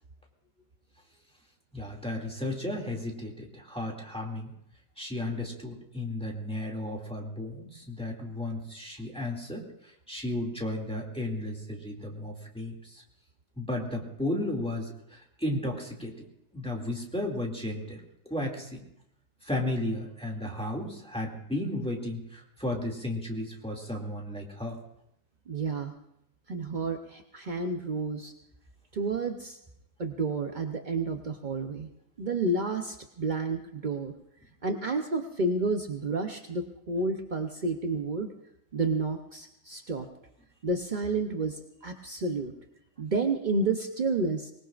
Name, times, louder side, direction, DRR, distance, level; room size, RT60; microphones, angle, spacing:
voice 1, 1.7-4.5 5.0-13.0 13.6-16.1 16.5-18.8 19.4-24.8, left 1 dB, 5° left, -1 dB, 2.3 m, -34 dB
voice 2, 25.5-25.9 26.5-28.3 28.9-29.6 30.0-31.9 32.2-34.1 34.6-38.3 38.7-40.1 40.6-42.5 43.0-44.5, right 3 dB, 55° right, 5 dB, 0.5 m, -30 dB
24.5 x 19.5 x 2.5 m, 0.79 s
omnidirectional pair, 2.0 m